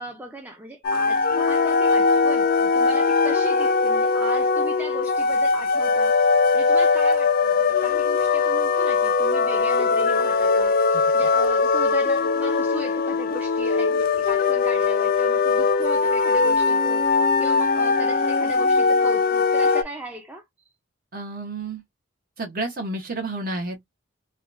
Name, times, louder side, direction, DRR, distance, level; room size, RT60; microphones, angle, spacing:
voice 1, 0.0-20.7, right 1 dB, 10° right, 0.5 m, -38 dB
sound 1, 0.8-19.8, left 4 dB, 45° left, 0.3 m, -20 dB
voice 2, 21.1-21.8 22.4-23.8, right 2 dB, 45° right, 0.8 m, -30 dB
3.6 x 2.2 x 2.5 m
head